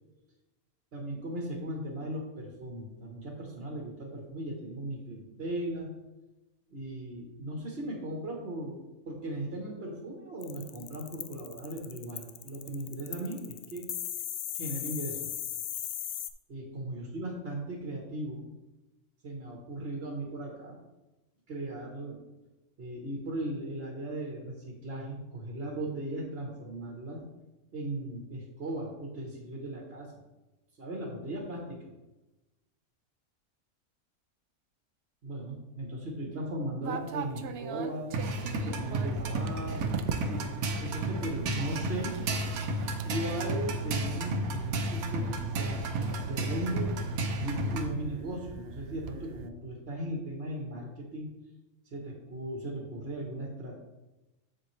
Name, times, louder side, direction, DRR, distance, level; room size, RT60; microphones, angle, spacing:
voice 1, 0.9-5.9 6.7-13.9 14.5-15.3 16.5-18.5 19.2-20.8 21.5-22.2 22.8-27.2 27.7-30.1 30.8-31.9 35.2-38.1 38.6-40.4 40.8-42.3 43.0-47.0 47.4-51.3 51.8-53.8, right 1 dB, 45° right, -1 dB, 1.3 m, -37 dB
sound 1, 10.4-16.3, left 11 dB, 70° left, 0.6 m, -37 dB
sound 2, 36.8-49.5, right 7 dB, 65° right, 0.6 m, -43 dB
sound 3, 38.1-47.9, right 2 dB, 80° right, 1.3 m, -32 dB
7.5 x 7.3 x 3.1 m, 1.0 s
omnidirectional pair, 1.5 m